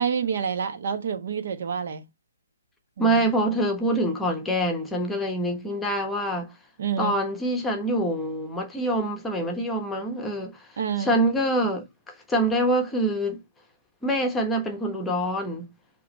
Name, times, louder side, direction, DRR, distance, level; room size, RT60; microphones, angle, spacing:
voice 1, 0.0-2.0 3.0-3.2 6.8-7.2 10.8-11.1, right 7 dB, 55° right, 1.1 m, -28 dB
voice 2, 3.0-6.5 7.0-10.7 11.0-13.4 14.0-15.7, right 1 dB, 5° left, 1.2 m, -25 dB
7.7 x 3.1 x 4.0 m
figure-of-eight pair, 135°, 0 cm